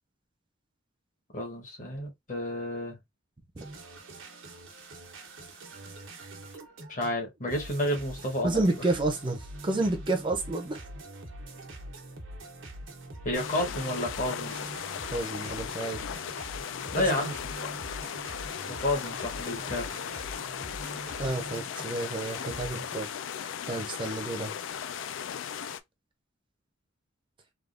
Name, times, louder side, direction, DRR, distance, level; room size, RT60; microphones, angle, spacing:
voice 1, 1.3-3.0 6.9-8.6 13.2-14.6 16.9-17.7 18.7-19.9, left 1 dB, 45° left, 1.1 m, -31 dB
sound 1, 3.6-22.8, right 1 dB, 90° right, 1.0 m, -44 dB
voice 2, 8.4-10.8 15.1-16.0 17.0-17.1 21.2-23.1 23.7-24.6, right 2 dB, 25° right, 0.5 m, -30 dB
sound 2, 13.3-25.8, left 8 dB, 75° left, 0.3 m, -37 dB
3.4 x 2.3 x 2.4 m
head